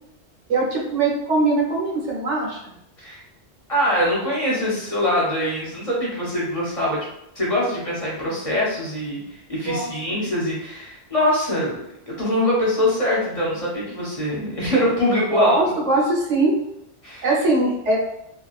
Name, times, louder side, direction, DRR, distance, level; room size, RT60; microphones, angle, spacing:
voice 1, 0.5-2.6 9.6-10.2 15.3-16.6 17.2-18.0, right 2 dB, 85° right, -3 dB, 1.1 m, -21 dB
voice 2, 3.7-7.0 7.3-11.8 12.1-15.6 17.0-17.2, left 1 dB, 35° left, -6 dB, 0.7 m, -23 dB
2.7 x 2.3 x 2.4 m, 0.81 s
omnidirectional pair, 1.2 m